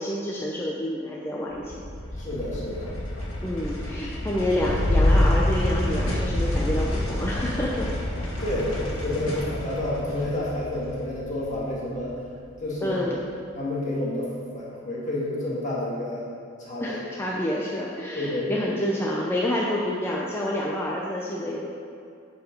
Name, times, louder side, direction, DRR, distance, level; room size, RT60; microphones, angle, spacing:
voice 1, 0.0-1.8 3.4-7.9 12.8-13.2 16.8-21.7, left 1 dB, 10° left, -4 dB, 0.6 m, -28 dB
sound 1, 1.5-12.1, left 1 dB, 75° left, 1.9 m, -27 dB
voice 2, 2.2-2.9 8.4-12.1 12.6-13.0 13.5-16.3 16.6-17.0 18.1-18.5, left 1 dB, 35° left, -6 dB, 1.8 m, -29 dB
11.0 x 4.7 x 5.2 m, 2.3 s
head